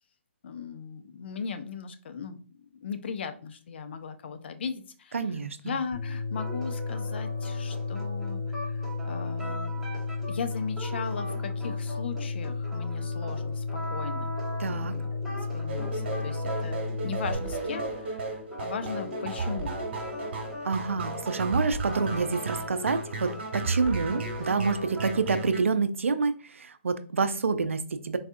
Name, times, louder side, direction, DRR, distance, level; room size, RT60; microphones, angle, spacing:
voice 1, 0.4-2.4 2.8-5.4 5.6-9.9 10.3-19.8, left 6 dB, 60° left, 8 dB, 0.5 m, -38 dB
voice 2, 5.1-5.8 14.6-14.9 20.6-28.2, right 4 dB, 90° right, 11 dB, 0.4 m, -28 dB
sound 1, 5.9-17.3, left 4 dB, 45° left, 1.5 m, -33 dB
sound 2, 6.3-25.5, right 1 dB, ahead, 0.9 m, -41 dB
sound 3, 15.7-25.6, right 3 dB, 60° right, 1.2 m, -34 dB
4.0 x 2.3 x 2.5 m, 0.40 s
hypercardioid pair, 145°, 7 cm